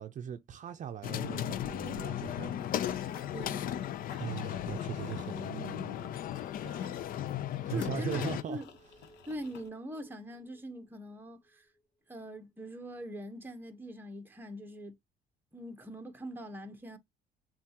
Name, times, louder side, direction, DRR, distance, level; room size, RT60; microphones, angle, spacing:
voice 1, 0.0-3.2 4.2-6.2 6.6-7.2 7.6-8.6, right 9 dB, 45° right, 0.6 m, -40 dB
sound 1, 1.0-8.4, left 11 dB, 55° left, 0.5 m, -36 dB
Run / Bird vocalization bird call bird song, 2.2-9.7, left 7 dB, 85° left, 1.0 m, -55 dB
voice 2, 3.3-3.8 7.7-8.7 9.3-11.6 12.1-14.9 15.5-17.0, right 1 dB, 10° right, 1.1 m, -42 dB
sound 2, 7.5-12.8 13.0-13.1, equal, 20° left, 1.9 m, -63 dB
7.2 x 2.4 x 2.8 m
cardioid pair, 110°, 17 cm